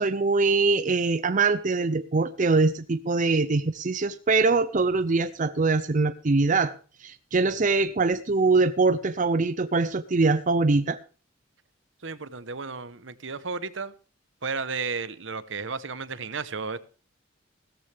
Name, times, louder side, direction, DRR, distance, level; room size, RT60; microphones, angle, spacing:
voice 1, 0.0-6.7 7.0-11.0, right 3 dB, 40° right, 0.6 m, -23 dB
voice 2, 12.0-13.9 14.4-16.8, right 4 dB, 65° right, 1.0 m, -33 dB
17.0 x 13.5 x 3.4 m
head